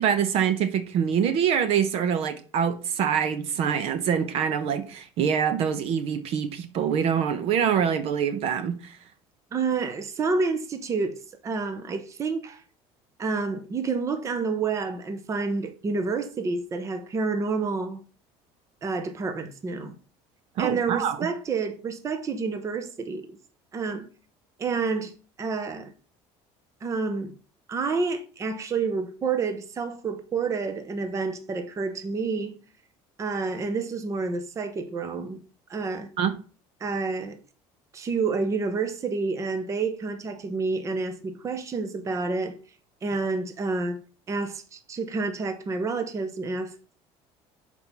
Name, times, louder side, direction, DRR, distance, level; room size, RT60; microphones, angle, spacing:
voice 1, 0.0-8.9 20.6-21.3 36.2-36.3, right 8 dB, 60° right, 0.9 m, -25 dB
voice 2, 9.5-12.6 13.2-18.0 18.8-20.0 20.6-23.4 23.7-24.1 24.6-25.9 26.8-27.3 27.7-32.6 33.2-35.4 35.7-36.1 36.8-37.4 37.9-42.6 43.0-44.0 44.3-46.8, right 4 dB, 25° right, 0.9 m, -29 dB
6.3 x 4.5 x 5.5 m
cardioid pair, 140°, 12 cm